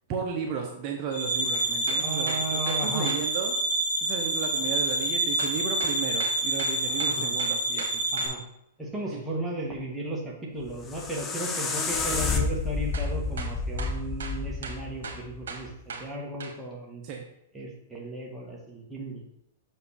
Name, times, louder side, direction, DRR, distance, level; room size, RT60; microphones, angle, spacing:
voice 1, 0.1-3.5 4.0-8.0 9.1-9.2 17.0-17.2, right 6 dB, 40° right, 0 dB, 1.0 m, -34 dB
sound 1, 1.1-8.3, right 1 dB, 75° left, 2.3 m, -28 dB
sound 2, 1.5-3.2 5.4-8.3 12.9-13.1 13.4-16.1 16.4-16.6, right 5 dB, 85° right, 1.2 m, -38 dB
voice 2, 2.0-3.1 6.8-7.3 8.1-8.4 8.8-17.0 17.5-19.2, right 1 dB, 5° right, -3 dB, 1.6 m, -35 dB
sound 3, 10.6-15.7, left 4 dB, 20° left, 0.8 m, -30 dB
6.5 x 5.2 x 4.3 m, 0.80 s
hypercardioid pair, 140°, 0 cm